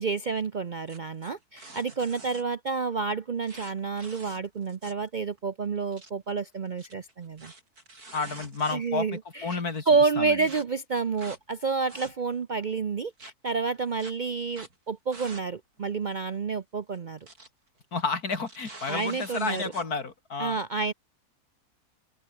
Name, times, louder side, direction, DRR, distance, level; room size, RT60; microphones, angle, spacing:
voice 1, 0.0-7.5 8.7-17.2 18.9-19.7 20.4-20.9, right 4 dB, 45° right, 0.6 m, -29 dB
sound 1, 0.9-2.4 3.4-5.1 5.4-5.5 5.8-6.1 6.7-9.0 9.5-9.6 10.4-10.6 11.2-11.4 11.8-12.4 13.2-13.3 14.0-14.1 14.5-14.7 15.1-15.5 15.8-15.9 16.9-17.5 17.8-18.0 18.4-19.9, right 2 dB, 80° right, 6.3 m, -47 dB
voice 2, 8.1-9.1 9.4-9.9 10.2-10.4 17.9-20.6, left 4 dB, 80° left, 3.3 m, -31 dB
omnidirectional pair, 1.6 m